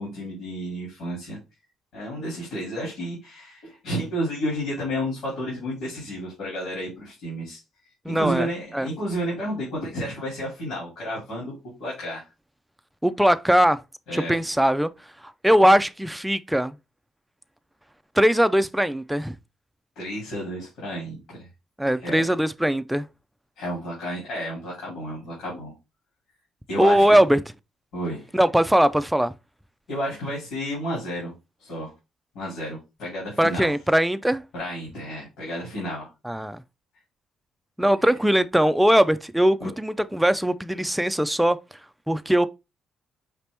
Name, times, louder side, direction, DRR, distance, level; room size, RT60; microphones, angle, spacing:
voice 1, 0.0-1.4 1.9-7.6 8.1-12.2 14.1-14.4 20.0-21.5 22.0-22.3 23.6-25.7 26.7-27.2 27.9-28.3 29.9-31.3 31.6-31.9 32.3-33.7 34.5-36.1 39.6-39.7, equal, 85° left, 2.6 m, -31 dB
voice 2, 8.1-8.5 8.7-8.9 13.0-13.8 14.1-14.9 15.4-16.7 18.2-19.4 21.8-23.1 26.8-27.4 28.3-29.3 33.4-34.4 36.2-36.6 37.8-41.6 42.1-42.5, equal, 5° right, 0.4 m, -20 dB
5.1 x 2.9 x 3.3 m
cardioid pair, 90°, 0 cm